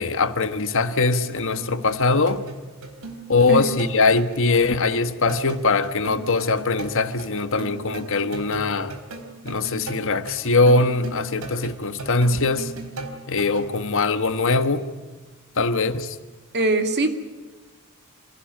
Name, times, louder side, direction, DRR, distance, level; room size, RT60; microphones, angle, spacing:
voice 1, 0.0-2.4 3.3-9.0 9.4-12.7 13.3-14.8 15.6-16.2, left 3 dB, 65° left, 1.4 m, -21 dB
sound 1, 1.3-13.7, right 2 dB, 85° right, 3.8 m, -38 dB
voice 2, 16.5-17.1, right 2 dB, 50° right, 2.5 m, -22 dB
26.0 x 16.5 x 9.0 m
head